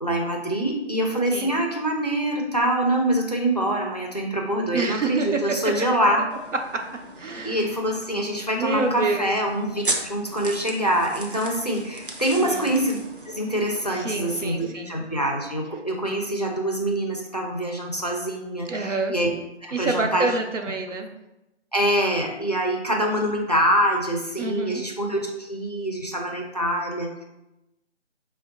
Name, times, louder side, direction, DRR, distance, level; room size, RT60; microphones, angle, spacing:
voice 1, 0.0-6.3 7.4-13.0 13.3-19.3 19.6-20.3 21.7-27.2, right 1 dB, 35° left, 1 dB, 0.4 m, -25 dB
voice 2, 4.7-5.6 6.7-6.8 7.2-7.7 8.6-9.3 12.4-12.7 14.0-14.9 18.7-19.1 19.7-21.1 24.4-24.8, right 3 dB, 90° right, 4 dB, 0.8 m, -27 dB
sound 1, 6.3-14.5, right 2 dB, 45° right, 0.6 m, -37 dB
4.6 x 2.1 x 3.8 m, 0.95 s
figure-of-eight pair, 160°, 36 cm